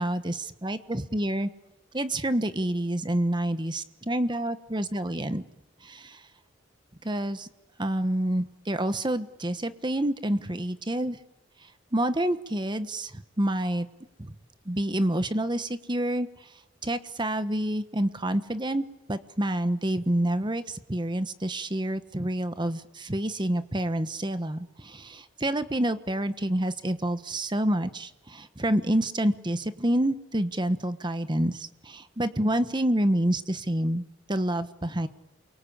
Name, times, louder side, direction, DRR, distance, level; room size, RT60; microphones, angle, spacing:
voice 1, 0.0-1.5 1.9-5.4 5.8-6.2 7.0-7.5 7.8-11.2 11.9-13.9 14.2-14.3 14.6-16.3 16.8-18.8 19.1-34.0 34.3-35.1, right 1 dB, 25° right, 11 dB, 1.2 m, -28 dB
28.5 x 23.5 x 8.7 m, 0.89 s
head